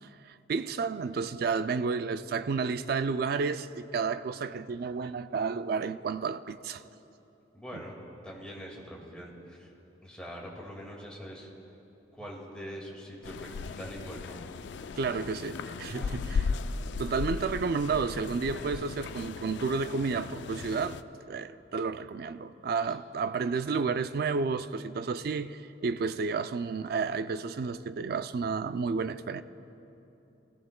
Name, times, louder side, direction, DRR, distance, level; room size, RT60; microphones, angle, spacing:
voice 1, 0.0-6.8 7.7-7.8 15.0-16.4 17.0-21.0 21.3-29.4, right 5 dB, 55° right, 0.3 m, -31 dB
voice 2, 7.5-9.7 10.0-11.5 12.2-14.4 15.9-16.1 22.8-23.0, equal, 5° left, 1.8 m, -43 dB
sound 1, 13.2-21.0, left 5 dB, 70° left, 0.4 m, -36 dB
20.5 x 15.5 x 2.2 m
head